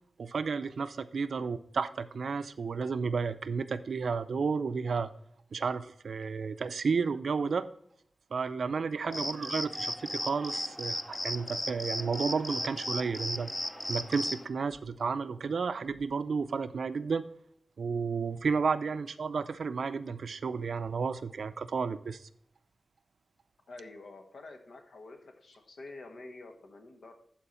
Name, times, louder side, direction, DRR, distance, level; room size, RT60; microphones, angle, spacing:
voice 1, 0.2-5.1 5.5-7.7 8.3-13.5 13.9-17.3 17.8-22.3, right 5 dB, 80° right, 12 dB, 0.5 m, -32 dB
sound 1, 9.1-14.5, left 1 dB, 15° left, 0.5 m, -36 dB
voice 2, 23.7-27.1, left 2 dB, 85° left, 4 dB, 1.3 m, -48 dB
11.5 x 4.6 x 4.3 m, 0.67 s
wide cardioid pair, 90°, 0 cm